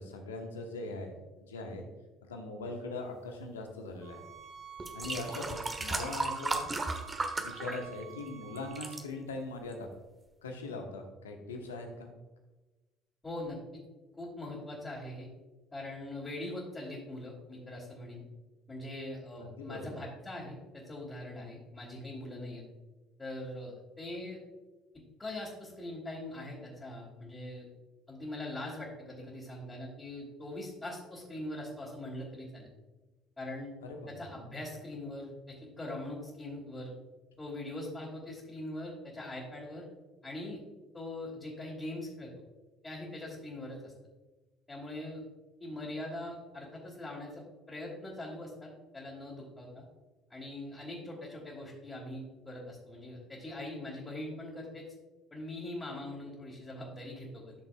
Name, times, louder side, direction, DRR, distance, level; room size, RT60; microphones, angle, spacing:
voice 1, 0.0-1.9 2.2-4.2 4.9-6.6 7.4-9.9 10.4-12.1 19.6-20.0 33.8-34.1, left 2 dB, 80° left, 3 dB, 1.1 m, -41 dB
sound 1, 4.0-9.0, right 8 dB, 55° right, 2.5 m, -50 dB
sound 2, 4.2-4.3 4.8-8.3 8.6-9.0 9.7-9.8, right 3 dB, 25° right, 1.1 m, -35 dB
voice 2, 13.2-13.6 14.2-15.3 15.7-18.2 18.7-22.6 23.2-24.4 25.2-27.7 28.1-32.7 33.4-33.7 34.1-36.9 37.4-39.8 40.2-40.6 40.9-42.3 42.8-43.9 44.7-45.2 45.6-49.8 50.3-54.9 55.3-57.5, left 1 dB, 20° left, -6 dB, 2.6 m, -42 dB
12.5 x 6.6 x 2.4 m, 1.2 s
figure-of-eight pair, 55°, 0 cm